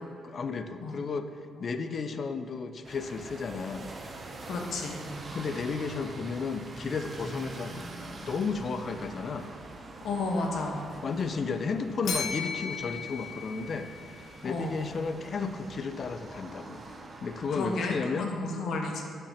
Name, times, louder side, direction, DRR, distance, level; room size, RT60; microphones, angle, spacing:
voice 1, 0.2-1.3 1.6-3.9 5.3-7.9 8.2-9.5 11.0-16.8 17.2-18.3, left 4 dB, 45° left, 9 dB, 0.5 m, -33 dB
sound 1, 2.8-17.8, right 2 dB, 35° right, 0.9 m, -44 dB
voice 2, 4.4-4.9 10.0-10.8 14.4-14.8 17.5-19.0, left 3 dB, 70° left, 1 dB, 1.2 m, -32 dB
Bell, 12.0-14.3, left 6 dB, 90° left, 1.4 m, -36 dB
6.8 x 5.9 x 5.7 m, 2.5 s
cardioid pair, 90°, 0 cm